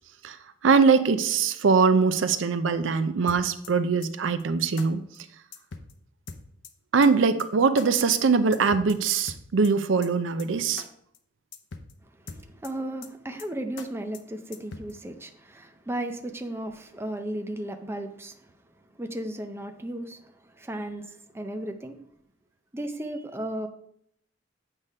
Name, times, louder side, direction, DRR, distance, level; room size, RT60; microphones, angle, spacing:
voice 1, 0.6-5.0 6.9-10.8, right 5 dB, 75° right, 12 dB, 0.5 m, -22 dB
sound 1, 3.3-3.7 4.0-4.1 4.4-4.5 4.8-4.9 5.1-5.2 5.5-5.9 6.3-6.7 7.0-7.1 7.4-7.5 7.8-7.9 8.1-8.2 8.5-9.0 9.3-9.7 10.0-10.1 10.4-10.5 10.8-10.9 11.1-11.2 11.5-11.9 12.3-12.7 13.0-13.1 13.4-13.5 13.8-13.9 14.1-14.2 14.5-14.9, left 4 dB, 70° left, 0.7 m, -41 dB
voice 2, 12.2-18.5 19.0-22.0 22.7-23.7, right 1 dB, 10° right, 6 dB, 0.5 m, -35 dB
8.2 x 3.6 x 5.4 m, 0.68 s
head